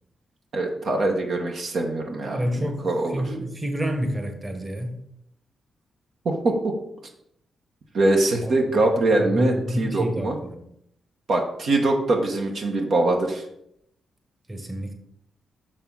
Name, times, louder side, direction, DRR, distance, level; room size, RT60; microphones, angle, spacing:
voice 1, 0.5-3.2 6.2-6.7 7.9-10.4 11.3-13.4, right 2 dB, 65° right, 1 dB, 1.3 m, -23 dB
voice 2, 2.2-2.9 3.1-5.0 8.4-8.6 9.2-10.6 14.5-14.9, equal, 25° right, 5 dB, 1.5 m, -28 dB
6.7 x 6.1 x 4.0 m, 0.74 s
supercardioid pair, 50°, 0 cm